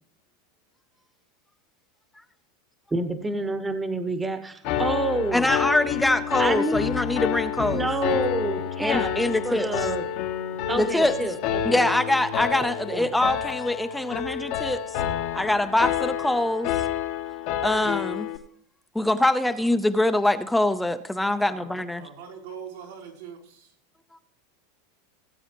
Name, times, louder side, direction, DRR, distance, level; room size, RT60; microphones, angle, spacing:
voice 1, 2.9-5.5 6.4-6.8 7.7-9.1 9.4-10.0 10.7-11.9 12.9-13.1, right 2 dB, 15° right, 8 dB, 1.2 m, -28 dB
Piano, 4.6-18.4, left 10 dB, 60° left, 1.2 m, -29 dB
voice 2, 5.3-7.9 8.8-9.9 10.8-11.1 11.6-14.8 15.3-16.8 17.6-18.3 18.9-22.1, left 1 dB, 5° left, 9 dB, 0.7 m, -24 dB
voice 3, 21.3-23.7, right 7 dB, 80° right, -3 dB, 3.8 m, -43 dB
18.0 x 8.0 x 3.0 m, 0.70 s
hypercardioid pair, 105°, 0 cm